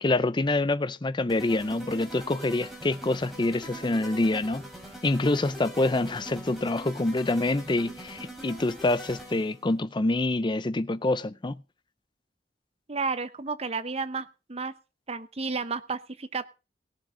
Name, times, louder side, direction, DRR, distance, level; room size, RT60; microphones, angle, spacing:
voice 1, 0.0-4.7 5.0-11.6, left 2 dB, 25° left, 0.6 m, -26 dB
sound 1, 1.3-9.6, right 1 dB, ahead, 4.9 m, -43 dB
voice 2, 12.9-14.7 15.1-16.4, right 4 dB, 35° right, 0.9 m, -32 dB
17.5 x 7.6 x 5.1 m
head